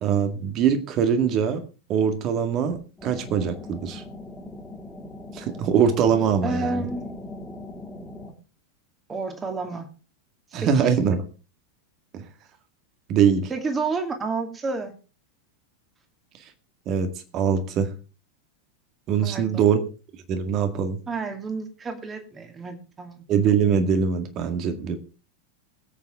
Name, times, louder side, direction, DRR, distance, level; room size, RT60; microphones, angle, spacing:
voice 1, 0.0-4.0 5.3-6.9 10.5-11.2 12.1-12.3 13.1-13.5 16.9-17.1 17.3-17.9 19.1-19.8 20.3-21.0 23.3-25.0, right 7 dB, 35° right, 8 dB, 2.0 m, -22 dB
sound 1, 3.0-8.3, left 1 dB, 10° left, 2.7 m, -39 dB
voice 2, 6.4-7.1 9.1-9.9 10.5-10.9 13.5-14.9 19.2-19.7 21.1-23.2, right 3 dB, 20° right, 5 dB, 2.4 m, -30 dB
21.5 x 8.5 x 3.7 m, 0.33 s
figure-of-eight pair, 90°, 0 cm